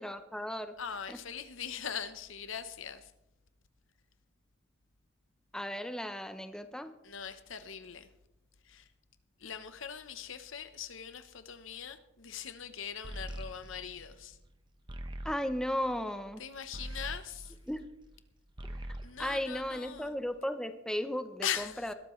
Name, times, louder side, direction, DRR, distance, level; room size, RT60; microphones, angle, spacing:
voice 1, 0.0-0.7 1.1-1.2 5.5-6.9 15.2-16.4 17.7-17.9 18.7-18.8 19.2-21.9, equal, 5° left, 0.6 m, -35 dB
voice 2, 0.8-3.1 7.0-8.1 8.6-8.9 9.4-14.4 16.4-17.6 19.0-20.1 21.4-21.9, left 8 dB, 70° left, 0.9 m, -41 dB
sound 1, 13.0-18.2 18.5-20.2, right 1 dB, 25° right, 0.9 m, -44 dB
20.5 x 12.5 x 3.2 m
head